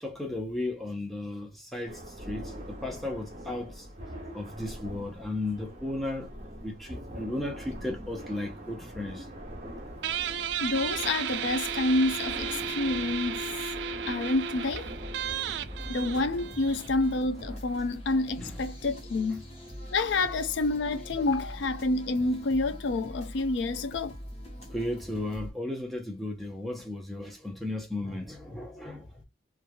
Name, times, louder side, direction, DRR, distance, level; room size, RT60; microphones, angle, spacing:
voice 1, 0.0-3.9 4.3-6.3 6.6-9.3 18.4-18.6 24.7-29.1, left 1 dB, ahead, 0.7 m, -35 dB
sound 1, 1.9-17.6, equal, 35° right, 1.1 m, -43 dB
Guitar, 10.0-17.2, right 8 dB, 70° right, 0.3 m, -34 dB
voice 2, 10.6-13.4 14.1-14.9 15.9-19.4 19.9-24.1, left 2 dB, 75° left, 0.4 m, -28 dB
sound 2, 15.5-25.5, equal, 35° left, 1.0 m, -43 dB
3.0 x 2.4 x 2.3 m
head